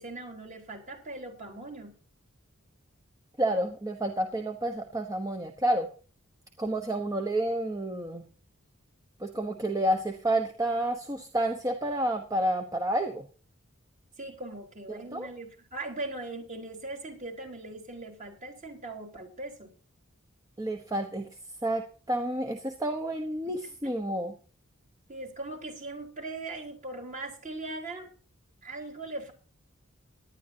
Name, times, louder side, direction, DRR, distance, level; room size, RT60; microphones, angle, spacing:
voice 1, 0.0-1.9 6.6-6.8 14.2-19.7 23.5-23.6 23.8-23.9 25.1-28.1 28.6-29.3, right 2 dB, 35° right, 2 dB, 3.8 m, -40 dB
voice 2, 3.4-5.9 6.6-8.3 9.2-13.3 14.9-15.3 20.6-21.3 21.6-24.3, right 1 dB, 15° right, 5 dB, 1.0 m, -30 dB
18.5 x 11.5 x 2.8 m, 0.38 s
head